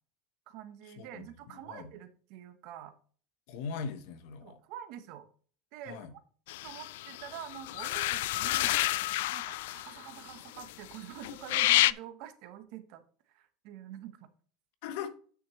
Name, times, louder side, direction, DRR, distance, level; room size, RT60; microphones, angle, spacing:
voice 1, 0.5-2.9 4.4-5.3 5.7-6.2 6.6-8.8 9.3-14.3, right 10 dB, 50° right, 1.1 m, -47 dB
voice 2, 1.0-1.9 3.5-4.6 5.9-6.1 14.8-15.1, left 6 dB, 60° left, 1.1 m, -40 dB
sound 1, 6.5-11.0 11.2-11.9, left 16 dB, 85° left, 0.3 m, -29 dB
9.7 x 6.2 x 3.1 m
cardioid pair, 175°, 0 cm